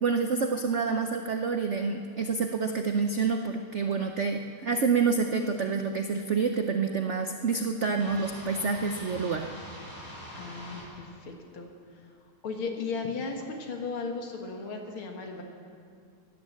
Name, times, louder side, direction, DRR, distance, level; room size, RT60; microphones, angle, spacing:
voice 1, 0.0-9.5, right 5 dB, 90° right, 5 dB, 0.6 m, -28 dB
sound 1, 8.0-10.9, equal, 15° left, 4.3 m, -44 dB
voice 2, 10.0-11.7 12.4-15.4, left 4 dB, 85° left, 2 dB, 2.5 m, -36 dB
16.0 x 11.5 x 7.3 m, 2.3 s
omnidirectional pair, 2.3 m